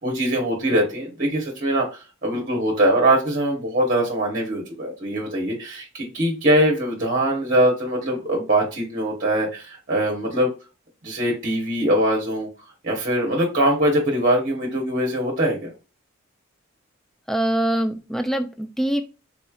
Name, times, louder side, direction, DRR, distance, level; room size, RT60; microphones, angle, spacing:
voice 1, 0.0-10.5 11.0-12.5 12.8-15.7, right 1 dB, 40° right, 0 dB, 0.9 m, -22 dB
voice 2, 17.3-19.0, right 1 dB, ahead, 6 dB, 0.3 m, -23 dB
4.0 x 3.0 x 2.3 m, 0.31 s
head